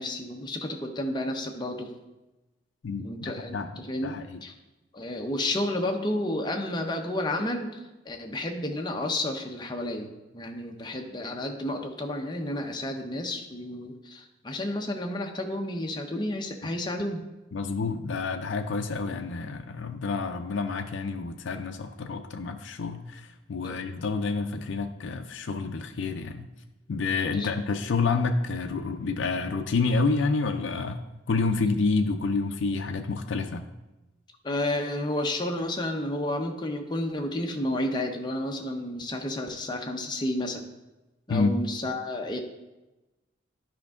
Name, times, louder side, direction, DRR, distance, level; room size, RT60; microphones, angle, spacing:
voice 1, 0.0-1.9 3.0-4.5 4.9-17.2 23.6-23.8 27.3-27.5 34.4-40.6 41.3-42.4, left 1 dB, 20° left, 3 dB, 0.7 m, -31 dB
voice 2, 2.8-4.4 17.5-26.5 26.9-31.0 31.3-33.6 41.3-41.5, left 4 dB, 65° left, 4 dB, 0.4 m, -28 dB
10.5 x 5.2 x 3.6 m, 1.1 s
head